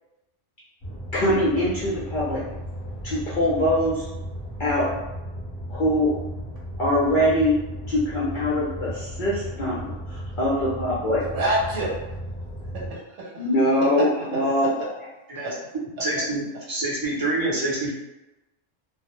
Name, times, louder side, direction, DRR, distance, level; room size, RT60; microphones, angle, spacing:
sound 1, 0.8-12.9, equal, 25° left, 0.7 m, -35 dB
voice 1, 1.1-2.4 3.0-4.1 4.6-4.9 5.7-6.1 6.8-7.6 7.9-11.2 13.4-14.7, left 1 dB, 60° left, -7 dB, 0.5 m, -23 dB
voice 2, 11.2-11.9 12.7-13.4 14.0-14.1 14.6-14.9 15.4-15.5, right 1 dB, 75° right, -4 dB, 1.0 m, -27 dB
voice 3, 16.0-17.9, right 2 dB, 25° right, -7 dB, 0.5 m, -26 dB
2.1 x 2.0 x 2.9 m, 0.99 s
omnidirectional pair, 1.3 m